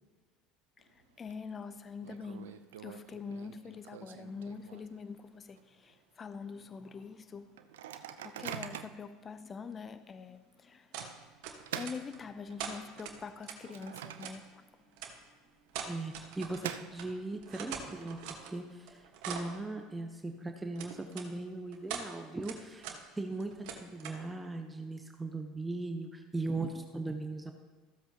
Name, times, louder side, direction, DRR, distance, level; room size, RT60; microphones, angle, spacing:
voice 1, 0.8-7.7 8.2-11.0 11.7-14.9, left 5 dB, 30° left, 0.4 m, -45 dB
Microwave oven, 0.8-1.3 1.6-1.7 2.0-5.1 5.5-5.6 5.9-6.2 6.7-6.8 7.6-9.1 9.7-9.8 11.0-12.8 13.2-14.7 15.0-15.1 16.0-17.4, right 10 dB, 85° right, 0.5 m, -45 dB
sound 1, 10.9-11.1 11.4-12.2 12.6-13.6 14.2-14.4 15.0-15.1 15.7-16.7 17.0-17.1 17.4-18.5 18.9-19.6 20.8-21.3 21.7-22.1 22.4-23.0 23.3-24.2, right 7 dB, 70° right, 1.3 m, -42 dB
voice 2, 15.8-22.9 23.2-27.5, right 2 dB, 15° right, 0.8 m, -39 dB
15.0 x 7.7 x 2.8 m
hypercardioid pair, 85°, 0 cm